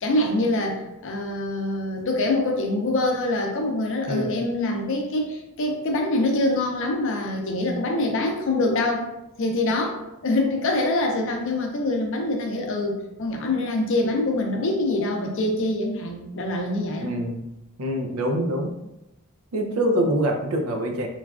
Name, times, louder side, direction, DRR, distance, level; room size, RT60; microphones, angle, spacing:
voice 1, 0.0-9.1 9.4-17.1, left 2 dB, 60° left, 1 dB, 0.5 m, -25 dB
voice 2, 17.0-17.4 17.8-18.8 19.5-21.1, right 1 dB, 80° right, 2 dB, 0.5 m, -25 dB
3.1 x 2.3 x 2.3 m, 0.91 s
head